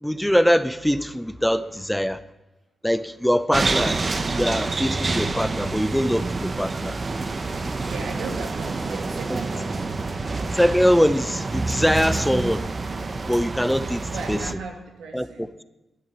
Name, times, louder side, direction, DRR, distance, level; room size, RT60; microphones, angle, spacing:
voice 1, 0.0-2.2 2.8-4.0 4.4-7.0 9.3-9.4 10.6-12.6 13.3-14.0 14.3-14.4 15.1-15.5, equal, 5° left, 13 dB, 0.7 m, -22 dB
sound 1, 3.5-14.5, right 3 dB, 45° right, 1.0 m, -27 dB
voice 2, 7.8-9.9 14.1-15.5, right 4 dB, 90° right, 2 dB, 2.1 m, -36 dB
12.0 x 9.2 x 8.3 m, 1.0 s
cardioid pair, 55°, 0 cm